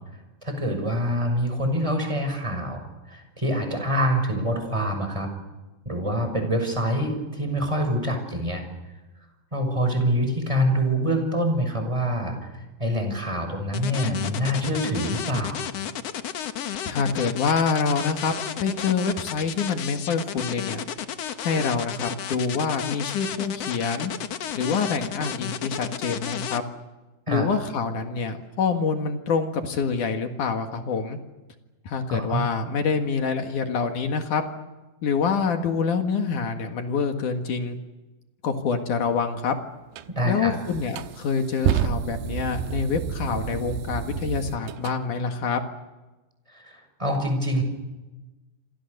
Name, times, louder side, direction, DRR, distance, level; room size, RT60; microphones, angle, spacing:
voice 1, 0.4-5.3 5.8-8.6 9.5-15.6 27.3-27.5 32.1-32.4 40.1-40.5 46.5-47.6, equal, 5° right, 5 dB, 5.9 m, -25 dB
sound 1, 13.7-26.6, left 9 dB, 80° left, 1.4 m, -32 dB
voice 2, 16.8-18.3 18.6-20.8 21.4-24.1 24.6-26.6 27.3-31.2 31.9-34.4 35.0-37.8 38.4-39.5 40.3-45.6, left 5 dB, 55° left, 5 dB, 2.9 m, -26 dB
sound 2, 39.9-40.1 40.7-45.0, right 9 dB, 90° right, 3.2 m, -29 dB
28.5 x 26.5 x 6.8 m, 1.1 s
omnidirectional pair, 4.8 m